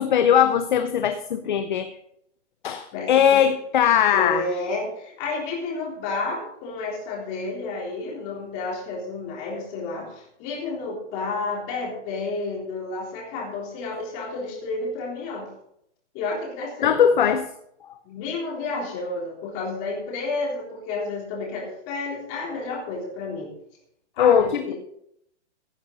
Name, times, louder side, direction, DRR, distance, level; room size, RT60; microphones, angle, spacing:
voice 1, 0.0-1.9 2.6-4.5 16.8-17.5 24.2-24.7, left 8 dB, 40° left, 9 dB, 0.7 m, -20 dB
voice 2, 2.9-3.4 4.1-15.5 16.1-17.1 18.0-23.5 24.2-24.7, left 3 dB, 20° left, -2 dB, 3.7 m, -31 dB
16.0 x 9.9 x 4.0 m, 0.74 s
hypercardioid pair, 175°, 36 cm